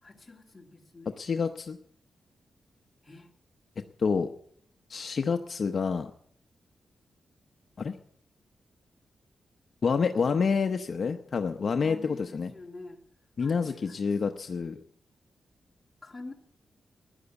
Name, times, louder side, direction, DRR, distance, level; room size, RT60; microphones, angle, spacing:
voice 1, 0.0-1.2 3.0-3.3 11.8-13.0 13.4-14.0 16.0-16.3, left 2 dB, 15° left, 1 dB, 2.3 m, -47 dB
voice 2, 1.2-1.8 4.0-4.3 4.9-6.1 7.8-8.0 9.8-12.5 13.4-14.8, left 5 dB, 50° left, 6 dB, 0.7 m, -28 dB
15.0 x 10.5 x 7.0 m, 0.66 s
wide cardioid pair, 130°, 0 cm